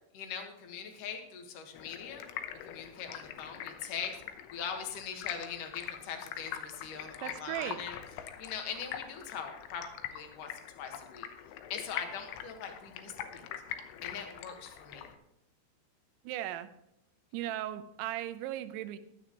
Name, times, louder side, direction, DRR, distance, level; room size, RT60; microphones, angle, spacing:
voice 1, 0.1-2.2 2.6-4.2 4.5-8.0 8.4-9.9 10.1-10.5 10.8-11.3 11.7-13.5 14.0-15.1, left 7 dB, 60° left, 4 dB, 2.6 m, -41 dB
Stream, 1.7-15.2, left 10 dB, 90° left, 3.3 m, -44 dB
voice 2, 7.2-7.8 16.2-16.7 17.3-19.0, right 13 dB, 85° right, 12 dB, 3.0 m, -37 dB
16.0 x 12.5 x 3.0 m, 0.83 s
omnidirectional pair, 5.2 m